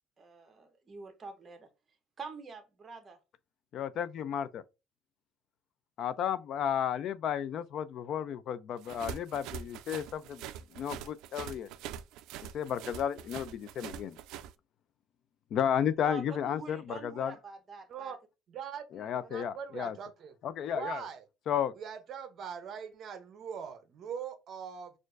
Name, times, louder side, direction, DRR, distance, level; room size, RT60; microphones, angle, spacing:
voice 1, 0.2-1.7 2.2-3.2 16.0-18.2, right 4 dB, 25° right, 0.9 m, -45 dB
voice 2, 3.7-4.6 6.0-10.4 10.7-11.7 12.5-14.2 15.5-17.3 18.9-20.0 20.4-21.0 21.5-21.7, left 9 dB, 50° left, 0.3 m, -33 dB
sound 1, 8.8-14.5, right 9 dB, 75° right, 0.3 m, -44 dB
voice 3, 18.5-20.3 20.7-21.2 21.8-24.9, right 7 dB, 45° right, 0.6 m, -42 dB
6.3 x 2.4 x 2.5 m
cardioid pair, 150°, 0 cm